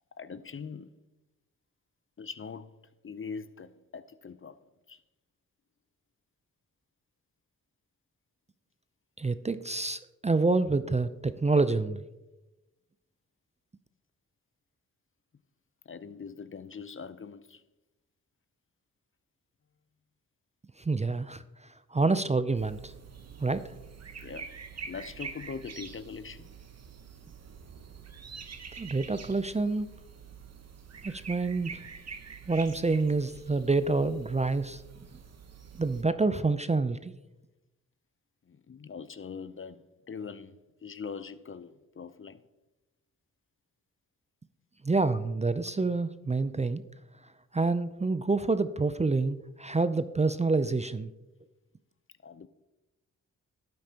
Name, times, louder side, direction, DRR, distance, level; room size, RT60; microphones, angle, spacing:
voice 1, 0.1-0.9 2.2-2.8 3.0-4.6 4.9-5.0 15.9-17.6 24.2-24.5 24.9-26.6 38.5-42.4 46.5-46.6 52.2-52.5, left 5 dB, 35° left, 0.6 m, -42 dB
voice 2, 9.2-12.0 20.8-21.4 21.9-22.9 23.4-23.6 28.8-29.9 31.0-31.8 32.5-34.8 35.8-37.1 44.8-46.8 47.5-51.1, right 3 dB, 20° right, 0.5 m, -27 dB
sound 1, 22.6-36.0, right 6 dB, 45° right, 1.1 m, -46 dB
12.0 x 8.7 x 2.9 m
supercardioid pair, 40°, 36 cm